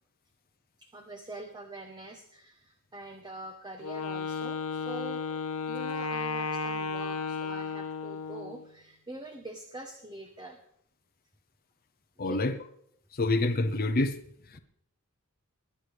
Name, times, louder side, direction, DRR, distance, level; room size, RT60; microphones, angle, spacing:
voice 1, 0.8-5.3 5.7-10.6 12.2-12.5, right 2 dB, 20° right, 1.1 m, -44 dB
Wind instrument woodwind instrument, 3.8-8.7, left 4 dB, 80° left, 1.0 m, -34 dB
voice 2, 12.2-12.5 13.1-14.2 14.5-14.6, left 2 dB, 45° left, 0.8 m, -27 dB
20.5 x 9.9 x 3.4 m
head